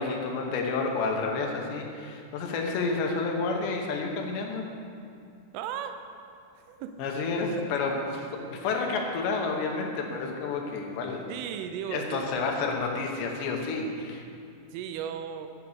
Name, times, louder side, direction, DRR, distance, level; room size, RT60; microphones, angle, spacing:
voice 1, 0.0-4.7 7.0-11.3 11.9-14.2, left 4 dB, 75° left, 2 dB, 2.9 m, -30 dB
voice 2, 5.5-6.0 6.6-7.0 11.3-12.2 14.7-15.5, right 9 dB, 80° right, 8 dB, 3.1 m, -35 dB
9.4 x 7.6 x 7.2 m, 2.4 s
omnidirectional pair, 5.8 m